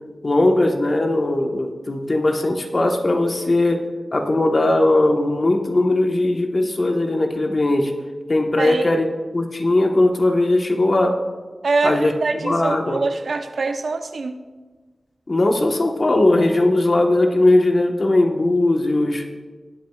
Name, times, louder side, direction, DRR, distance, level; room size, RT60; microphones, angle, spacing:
voice 1, 0.2-3.8 4.1-7.9 8.3-9.1 9.3-11.2 11.8-13.0 15.3-19.2, left 2 dB, 45° left, 3 dB, 1.2 m, -19 dB
voice 2, 8.6-8.9 11.6-14.4, right 3 dB, 85° right, 7 dB, 0.7 m, -24 dB
20.0 x 8.5 x 2.4 m, 1.4 s
wide cardioid pair, 105°, 0 cm